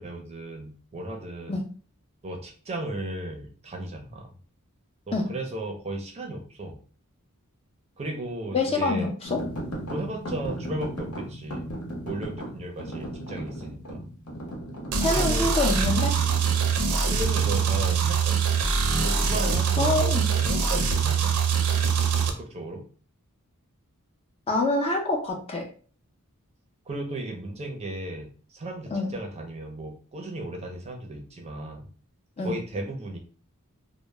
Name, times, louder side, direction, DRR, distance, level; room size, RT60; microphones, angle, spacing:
voice 1, 0.0-1.6 2.2-4.3 5.1-6.8 8.0-9.1 9.8-11.6 12.0-14.0 15.1-15.8 17.1-18.4 19.0-21.4 22.2-22.9 26.9-31.9 32.4-33.2, right 1 dB, 30° right, 2 dB, 0.5 m, -35 dB
voice 2, 8.5-9.4 15.0-16.2 19.8-20.3 24.5-25.7 28.9-29.1 32.4-32.5, left 2 dB, 25° left, 2 dB, 0.4 m, -26 dB
sound 1, 9.2-17.6, equal, 75° left, 0.8 m, -37 dB
sound 2, 14.9-22.3, right 6 dB, 80° right, 0.5 m, -23 dB
2.1 x 2.0 x 3.1 m, 0.40 s
head